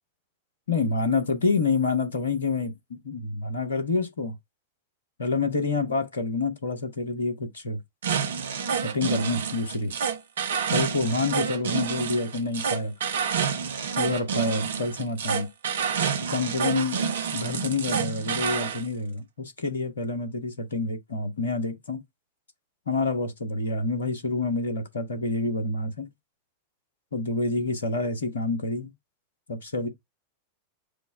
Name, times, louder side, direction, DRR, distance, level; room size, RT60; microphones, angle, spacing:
voice 1, 0.7-4.3 5.2-7.8 8.8-9.9 10.7-12.9 14.0-15.5 16.3-22.0 22.9-26.1 27.1-28.9 29.5-29.9, left 3 dB, 75° left, 1.1 m, -28 dB
sound 1, 8.0-18.8, right 6 dB, 65° right, 0.6 m, -28 dB
5.0 x 2.1 x 4.8 m
figure-of-eight pair, 90°, 0 cm